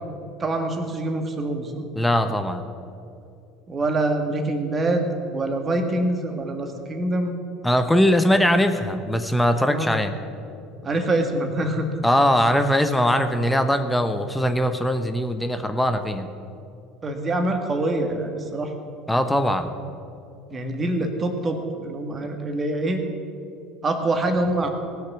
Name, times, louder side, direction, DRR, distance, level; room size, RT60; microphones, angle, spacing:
voice 1, 0.4-1.8 3.7-5.1 5.3-7.4 9.7-9.9 10.8-11.9 17.0-18.7 20.5-23.0 23.8-24.7, right 2 dB, 30° right, 5 dB, 1.8 m, -25 dB
voice 2, 2.0-2.6 7.6-10.1 12.0-16.3 19.1-19.7, equal, 5° left, 7 dB, 1.0 m, -21 dB
19.0 x 6.6 x 6.1 m, 2.6 s
hypercardioid pair, 70°, 0 cm